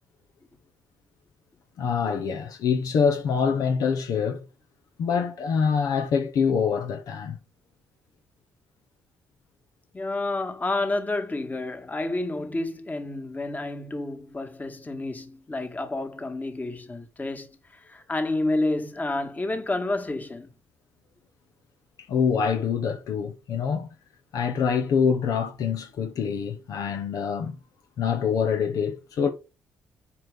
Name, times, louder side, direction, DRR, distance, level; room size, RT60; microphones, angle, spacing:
voice 1, 1.8-4.5 5.0-7.4 22.0-23.9 24.3-27.6 28.0-29.3, left 6 dB, 65° left, 1.1 m, -25 dB
voice 2, 9.9-20.5, left 2 dB, 25° left, 1.8 m, -30 dB
7.5 x 5.0 x 5.2 m
hypercardioid pair, 50°, 7 cm